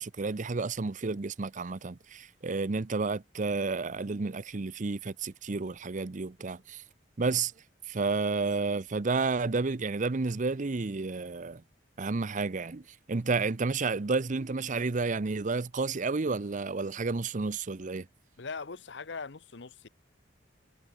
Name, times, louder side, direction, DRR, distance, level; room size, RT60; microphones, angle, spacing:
voice 1, 0.0-6.8 7.2-7.5 7.9-11.6 12.0-12.8 13.1-18.1, right 4 dB, 40° right, 0.6 m, -31 dB
voice 2, 18.4-19.9, left 4 dB, 65° left, 0.9 m, -40 dB
head